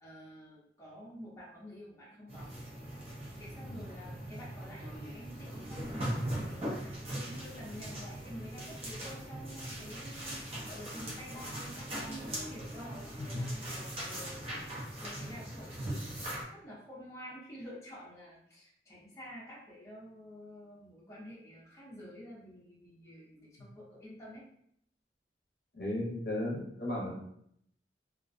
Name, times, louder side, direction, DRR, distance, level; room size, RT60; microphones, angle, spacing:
voice 1, 0.0-2.6 3.4-14.7 15.0-16.1 16.5-24.4, equal, 15° left, -7 dB, 0.5 m, -49 dB
sound 1, 2.3-16.4, right 1 dB, 35° right, 0.5 m, -40 dB
voice 2, 25.7-27.1, left 1 dB, 60° left, -2 dB, 0.6 m, -35 dB
2.4 x 2.1 x 2.5 m, 0.70 s
head